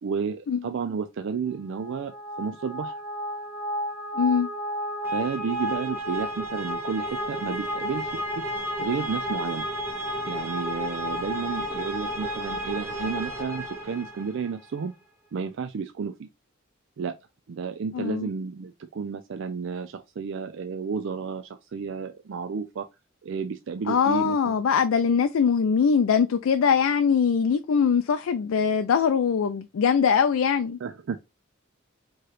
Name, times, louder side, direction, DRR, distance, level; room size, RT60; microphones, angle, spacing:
voice 1, 0.0-2.1 2.4-3.0 5.1-8.5 8.8-9.6 10.2-15.0 15.3-16.3 17.0-17.2 17.5-22.8 23.2-24.6 30.8-31.2, right 5 dB, 60° right, 0.4 m, -32 dB
sound 1, 1.7-14.5, equal, 10° right, 1.1 m, -32 dB
voice 2, 4.1-4.5 17.9-18.3 23.9-30.8, left 6 dB, 75° left, 0.4 m, -22 dB
4.7 x 3.1 x 3.0 m
head